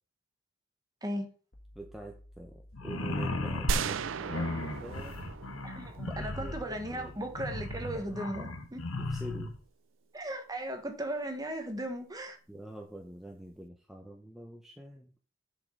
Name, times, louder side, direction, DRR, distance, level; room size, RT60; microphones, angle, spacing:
sound 1, 1.5-8.3, left 1 dB, 45° left, 1.5 m, -54 dB
voice 1, 1.7-5.2 6.2-7.4 9.0-9.5 12.5-15.1, right 1 dB, ahead, 0.7 m, -46 dB
sound 2, 2.7-9.6, left 2 dB, 80° left, 1.1 m, -36 dB
sound 3, 3.7-6.6, right 5 dB, 65° right, 0.4 m, -35 dB
voice 2, 5.6-8.8 10.1-12.4, right 1 dB, 15° right, 1.2 m, -37 dB
7.4 x 5.1 x 5.5 m
head